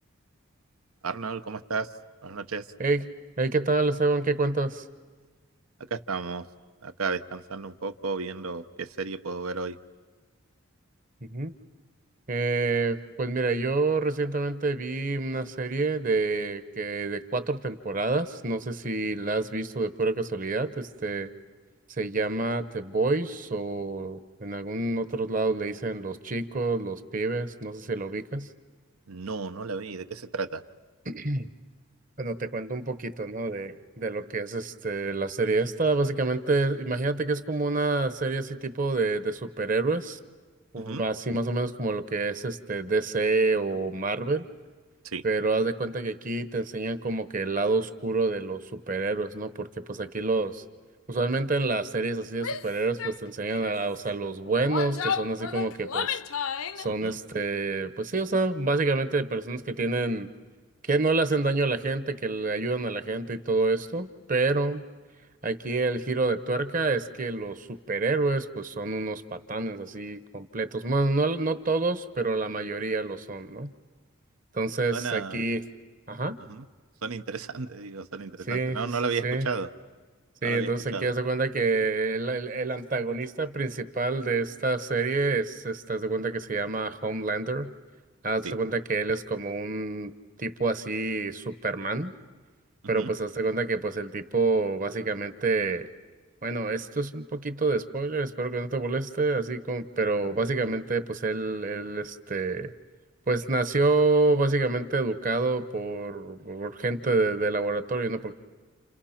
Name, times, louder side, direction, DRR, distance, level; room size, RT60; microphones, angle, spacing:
voice 1, 1.0-1.9 2.2-2.7 5.9-6.5 6.8-9.8 29.1-30.6 40.8-41.0 45.0-45.2 56.9-57.2 74.9-75.4 76.5-76.6 77.0-79.7 80.4-81.1 88.4-88.5 93.0-93.1, right 4 dB, 90° right, 11 dB, 1.0 m, -33 dB
voice 2, 3.4-4.8 11.2-11.5 12.3-21.3 22.0-28.5 31.1-31.5 32.2-40.2 40.7-44.5 45.2-50.6 51.1-56.2 56.8-60.3 60.9-64.8 65.4-73.7 74.5-75.6 76.1-76.4 78.5-78.8 79.2-79.5 80.4-87.7 88.2-90.1 90.4-92.1 92.9-95.9 96.4-102.7 103.3-108.3, right 3 dB, 40° right, 12 dB, 1.0 m, -28 dB
Female speech woman speaking / Yell, 52.4-52.7 53.0-53.2 53.5-53.8 54.5-56.9, left 7 dB, 80° left, 0.8 m, -32 dB
30.0 x 30.0 x 5.9 m, 1.4 s
head